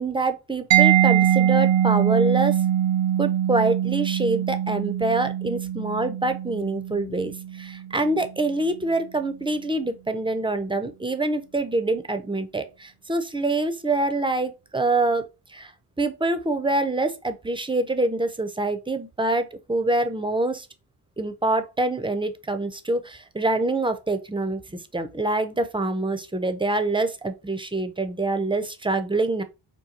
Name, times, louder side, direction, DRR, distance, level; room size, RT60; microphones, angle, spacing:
voice 1, 0.0-2.6 3.2-15.2 15.5-15.7 16.0-20.7 21.2-29.4, right 2 dB, 15° right, 0.4 m, -25 dB
Mallet percussion, 0.7-8.2, right 11 dB, 75° right, 0.5 m, -22 dB
3.9 x 2.3 x 2.8 m
cardioid pair, 75°, 44 cm